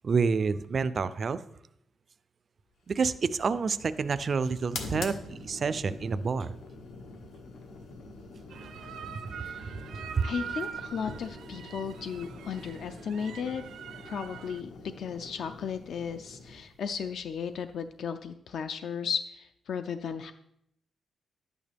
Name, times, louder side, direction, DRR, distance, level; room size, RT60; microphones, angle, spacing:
voice 1, 0.0-1.4 2.9-6.6 10.2-10.3, right 5 dB, 35° right, 14 dB, 0.3 m, -28 dB
sound 1, 2.9-18.2, left 3 dB, 85° left, 1.2 m, -45 dB
sound 2, 8.5-14.6, right 8 dB, 90° right, 0.6 m, -43 dB
voice 2, 9.4-9.8 10.2-13.6 14.1-20.3, left 6 dB, 60° left, 9 dB, 0.4 m, -35 dB
11.0 x 8.8 x 3.4 m, 0.76 s
wide cardioid pair, 180°, 0 cm